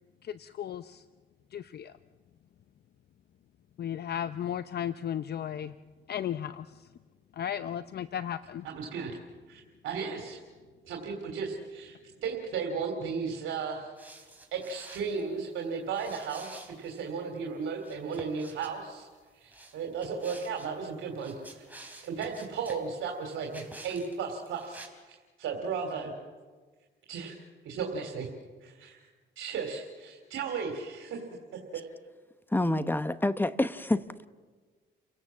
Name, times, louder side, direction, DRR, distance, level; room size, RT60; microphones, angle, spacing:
voice 1, 0.2-1.0 1.5-2.0 3.8-5.8 6.1-6.9 7.3-8.7, left 9 dB, 55° left, 12 dB, 0.7 m, -35 dB
voice 2, 8.6-9.1 9.5-10.4 10.8-13.9 14.5-19.1 19.3-21.7 22.0-25.1 25.4-26.1 27.1-27.4 27.6-28.3 28.6-29.0 29.4-31.2 31.7-31.8, right 5 dB, 80° right, 2 dB, 3.1 m, -35 dB
sound 1, 14.0-15.2 15.9-17.0 17.8-18.7 19.5-20.7 21.1-22.9 23.5-24.2 24.5-24.9, right 2 dB, 10° right, 4.3 m, -49 dB
voice 3, 32.5-34.3, left 1 dB, 10° left, 13 dB, 1.0 m, -28 dB
30.0 x 17.5 x 7.4 m, 1.4 s
cardioid pair, 90°, 20 cm